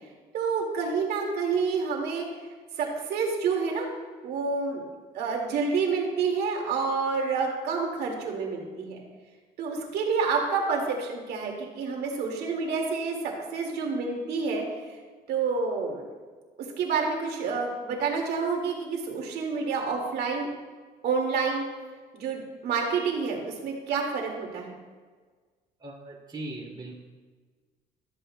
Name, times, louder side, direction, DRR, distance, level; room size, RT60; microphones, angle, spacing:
voice 1, 0.3-2.3 2.8-3.9 4.2-4.8 5.1-9.0 9.6-13.2 13.5-14.6 15.3-16.0 16.8-20.5 21.0-21.6 22.1-24.7, right 5 dB, 70° right, 1 dB, 2.1 m, -28 dB
voice 2, 25.8-27.0, right 2 dB, 25° right, -4 dB, 2.5 m, -39 dB
13.5 x 7.8 x 2.2 m, 1.4 s
cardioid pair, 110°, 17 cm